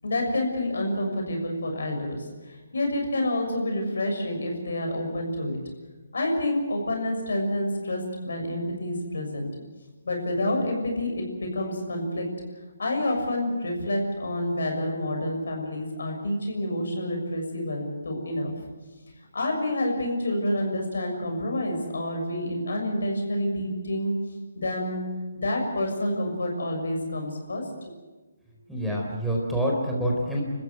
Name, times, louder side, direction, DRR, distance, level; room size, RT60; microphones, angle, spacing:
voice 1, 0.0-5.6 6.1-9.5 10.0-12.3 12.8-18.5 19.3-24.1 24.5-27.9, left 1 dB, 70° left, 2 dB, 6.7 m, -28 dB
voice 2, 28.7-30.4, equal, ahead, -3 dB, 4.4 m, -26 dB
28.0 x 14.5 x 8.0 m, 1.2 s
figure-of-eight pair, 145°, 0 cm